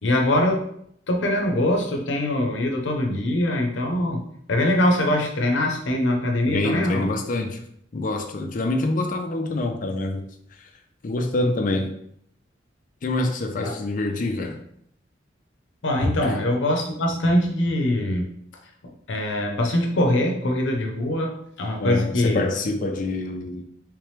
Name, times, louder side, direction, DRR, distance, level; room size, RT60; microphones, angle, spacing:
voice 1, 0.0-0.7 1.1-4.2 4.5-7.1 13.6-13.7 15.8-18.3 18.8-22.4, left 1 dB, 85° left, 2 dB, 0.7 m, -23 dB
voice 2, 6.5-7.7 7.9-10.2 10.5-10.7 11.0-11.9 13.0-14.6 16.2-16.4 21.8-23.6, left 2 dB, 45° left, 5 dB, 0.4 m, -26 dB
3.3 x 3.2 x 3.2 m, 0.70 s
head